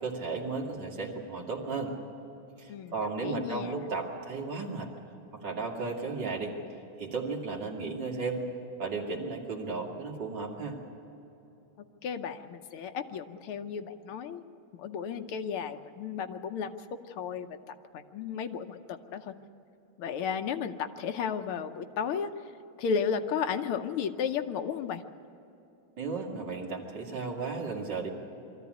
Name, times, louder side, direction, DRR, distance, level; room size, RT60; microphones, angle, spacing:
voice 1, 0.0-1.9 2.6-4.9 5.3-6.5 7.0-8.4 8.8-10.8 26.0-28.1, right 4 dB, 55° right, -1 dB, 3.0 m, -34 dB
voice 2, 2.7-3.7 12.0-14.4 14.7-16.8 17.1-19.3 20.0-22.3 22.8-25.0, left 7 dB, 80° left, 8 dB, 1.7 m, -34 dB
23.0 x 14.0 x 9.4 m, 3.0 s
omnidirectional pair, 2.4 m